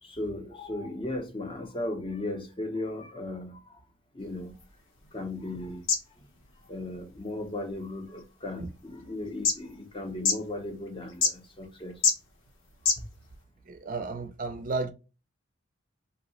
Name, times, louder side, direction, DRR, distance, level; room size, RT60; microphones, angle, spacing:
voice 1, 0.0-3.8 4.1-4.6 5.0-5.8 6.2-6.3 6.7-12.0, left 2 dB, 25° left, 0.6 m, -36 dB
sound 1, 4.2-13.4, left 5 dB, 80° left, 0.8 m, -34 dB
voice 2, 13.7-14.9, right 3 dB, 40° right, 0.4 m, -33 dB
2.7 x 2.0 x 4.0 m
head